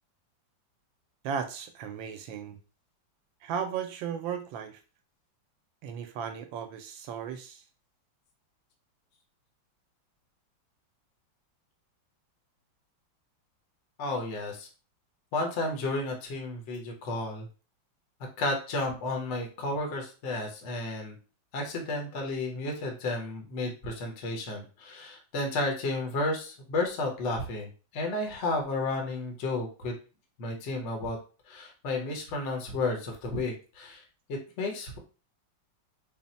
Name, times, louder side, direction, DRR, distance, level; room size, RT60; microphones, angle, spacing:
voice 1, 1.2-2.6 3.4-4.8 5.8-7.6, right 7 dB, 80° right, 7 dB, 1.3 m, -35 dB
voice 2, 14.0-14.7 15.3-17.5 18.4-21.1 21.5-29.9 30.4-31.2 31.5-34.0 34.6-35.0, left 2 dB, 45° left, 1 dB, 1.0 m, -32 dB
4.1 x 2.0 x 4.1 m, 0.34 s
omnidirectional pair, 2.1 m